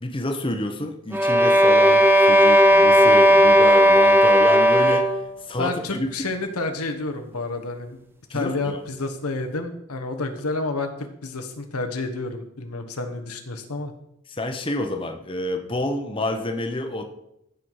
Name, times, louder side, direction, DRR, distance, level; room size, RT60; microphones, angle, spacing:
voice 1, 0.0-6.1 8.3-8.8 14.3-17.0, left 1 dB, 25° left, 5 dB, 0.9 m, -29 dB
sound 1, 1.1-5.3, equal, 10° right, 0.8 m, -15 dB
voice 2, 5.6-8.0 8.3-13.9, left 3 dB, 90° left, 6 dB, 1.3 m, -29 dB
15.0 x 5.8 x 4.8 m, 0.81 s
head